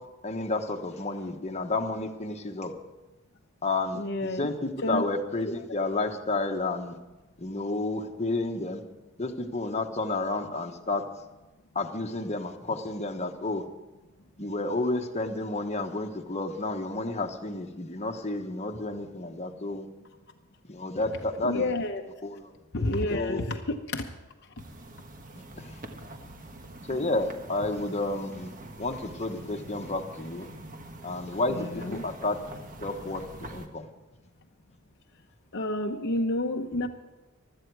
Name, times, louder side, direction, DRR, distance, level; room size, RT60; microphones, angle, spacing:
voice 1, 0.2-2.7 3.6-7.0 7.4-8.8 9.2-11.0 11.7-13.6 14.4-19.9 20.7-21.7 22.2-22.8 23.1-23.4 25.5-25.8 26.9-28.5 28.8-30.5 31.0-32.4 32.8-33.9, left 2 dB, 35° left, 4 dB, 1.2 m, -31 dB
voice 2, 3.9-4.5 4.8-5.1 21.4-22.0 22.7-24.1 31.5-32.0 35.5-36.9, left 2 dB, 55° left, 3 dB, 0.9 m, -29 dB
sound 1, 24.6-33.7, right 2 dB, 40° right, 1.4 m, -45 dB
16.0 x 12.5 x 4.8 m, 1.1 s
head